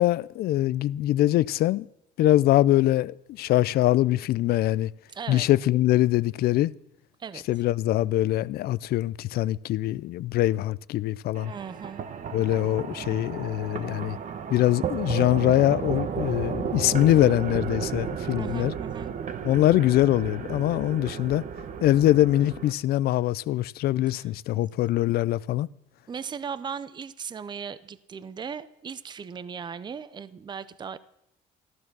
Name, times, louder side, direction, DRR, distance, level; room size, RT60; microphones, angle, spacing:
voice 1, 0.0-1.9 2.2-4.9 5.3-6.7 7.5-11.5 12.3-14.2 14.5-18.7 19.4-21.4 21.8-25.7, left 14 dB, 65° left, 0.4 m, -23 dB
voice 2, 5.1-5.5 7.2-7.4 11.5-12.1 18.3-19.1 24.2-24.7 26.1-31.0, right 6 dB, 25° right, 0.6 m, -37 dB
sound 1, 11.3-22.7, right 7 dB, 50° right, 1.1 m, -33 dB
14.0 x 12.5 x 6.1 m
cardioid pair, 110°, 17 cm